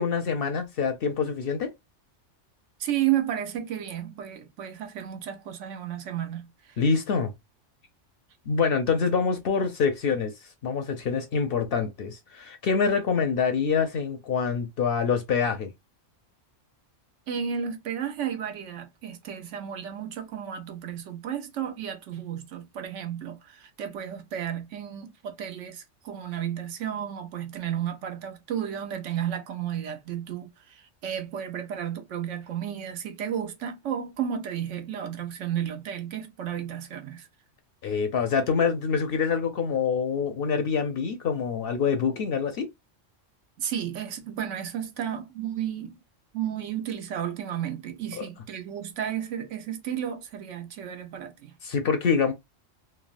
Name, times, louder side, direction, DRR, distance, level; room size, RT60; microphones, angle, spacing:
voice 1, 0.0-1.7 6.8-7.3 8.5-10.3 10.6-15.7 37.8-42.7 48.1-48.2 51.6-52.3, left 5 dB, 60° left, 0.6 m, -25 dB
voice 2, 2.8-6.8 17.3-37.3 43.6-46.0 46.3-51.6, right 9 dB, 80° right, 1.0 m, -33 dB
3.4 x 2.0 x 2.4 m
omnidirectional pair, 1.3 m